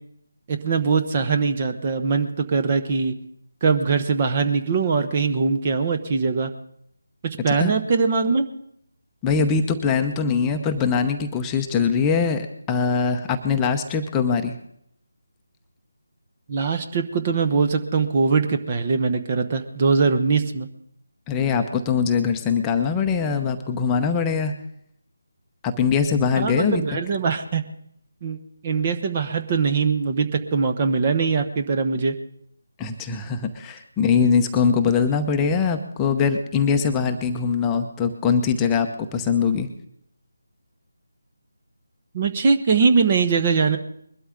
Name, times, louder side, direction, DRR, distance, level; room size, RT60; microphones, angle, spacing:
voice 1, 0.5-3.1 3.6-6.5 7.2-8.5 16.5-20.7 26.4-27.6 28.2-28.4 28.6-32.1 42.1-43.8, right 5 dB, 30° right, 7 dB, 1.1 m, -22 dB
voice 2, 9.2-14.5 21.3-24.5 25.6-27.0 32.8-39.7, left 6 dB, 10° left, 4 dB, 0.8 m, -22 dB
21.5 x 12.5 x 3.8 m, 0.71 s
figure-of-eight pair, 155°, 0 cm